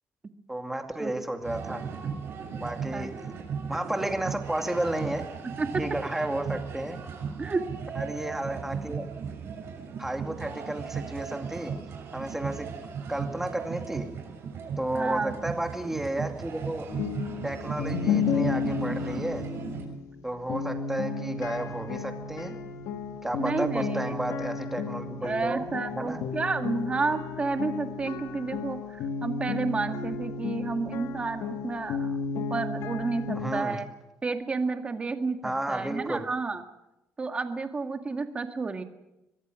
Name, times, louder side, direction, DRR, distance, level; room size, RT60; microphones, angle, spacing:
voice 1, 0.5-1.8 2.6-3.4 3.7-5.2 5.8-7.0 8.0-9.0 10.0-11.8 12.1-12.7 13.1-14.1 14.8-16.9 17.4-19.5 20.2-22.6 23.2-26.2 33.3-33.8 35.4-36.3, right 1 dB, 5° right, 4 dB, 2.4 m, -32 dB
sound 1, 1.4-19.8, right 6 dB, 50° right, 6.7 m, -37 dB
voice 2, 14.9-15.4 23.4-24.0 25.2-33.9 34.2-36.6 37.2-38.8, right 4 dB, 20° right, 6 dB, 1.8 m, -31 dB
sound 2, 16.9-33.6, left 5 dB, 80° left, 1.6 m, -33 dB
23.0 x 22.0 x 6.3 m, 0.93 s
cardioid pair, 155°, 5 cm